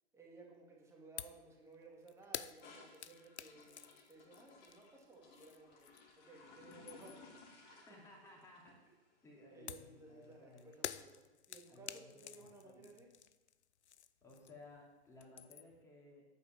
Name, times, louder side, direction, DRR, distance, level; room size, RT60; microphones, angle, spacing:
voice 1, 0.1-5.8 6.2-7.8 9.5-13.1, right 3 dB, 10° right, -1 dB, 2.3 m, -58 dB
sound 1, 1.2-1.5 1.7-6.2 6.6-7.3 9.7-14.8 15.0-15.8, left 9 dB, 75° left, 0.6 m, -50 dB
sound 2, 2.6-10.8, left 4 dB, 25° left, 2.4 m, -61 dB
voice 2, 7.9-8.8 9.2-10.7 11.7-12.9 14.2-16.2, left 2 dB, 10° left, -2 dB, 2.9 m, -59 dB
9.6 x 8.6 x 7.4 m, 1.2 s
figure-of-eight pair, 130°, 34 cm